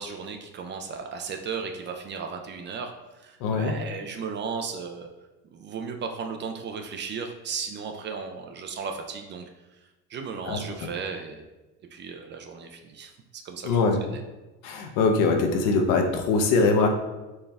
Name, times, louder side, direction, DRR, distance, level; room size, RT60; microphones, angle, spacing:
voice 1, 0.0-5.1 5.5-9.8 10.1-11.5 11.9-13.7 14.1-14.2, right 5 dB, 35° right, 5 dB, 0.4 m, -35 dB
voice 2, 3.4-3.7 10.4-10.6 13.6-14.0 14.6-16.9, left 4 dB, 70° left, 4 dB, 0.7 m, -22 dB
4.4 x 2.3 x 3.3 m, 1.1 s
supercardioid pair, 105°, 34 cm